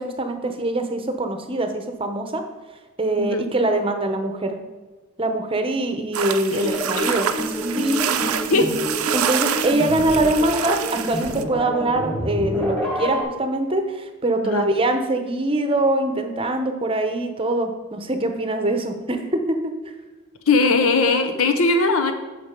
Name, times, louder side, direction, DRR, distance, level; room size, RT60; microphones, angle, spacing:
voice 1, 0.0-2.4 3.0-4.6 5.2-7.3 7.6-8.6 9.1-19.4, right 1 dB, 25° right, 6 dB, 0.8 m, -23 dB
sound 1, 6.1-11.4, right 9 dB, 80° right, 0.6 m, -27 dB
sound 2, 6.6-13.2, equal, ahead, 1.7 m, -28 dB
voice 2, 20.5-22.1, left 3 dB, 75° left, 7 dB, 1.0 m, -19 dB
8.6 x 6.0 x 5.2 m, 1.3 s
head